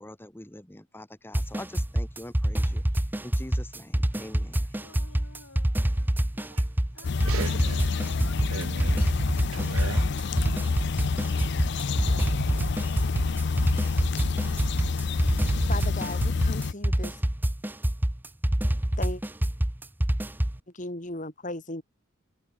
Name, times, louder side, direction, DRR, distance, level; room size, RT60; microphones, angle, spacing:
voice 1, 0.0-4.8, left 1 dB, 10° left, 1.0 m, -44 dB
sound 1, 1.3-20.6, right 1 dB, 10° right, 0.6 m, -26 dB
Speech, 4.7-6.3 6.9-11.0, left 4 dB, 80° left, 4.8 m, -50 dB
sound 2, 7.0-16.7, left 4 dB, 55° left, 0.5 m, -28 dB
voice 2, 7.2-7.9 8.5-9.0 9.5-10.1 12.1-12.3, right 5 dB, 75° right, 0.6 m, -36 dB
voice 3, 15.7-17.2 19.0-19.2 20.7-21.8, left 2 dB, 35° left, 3.1 m, -36 dB
head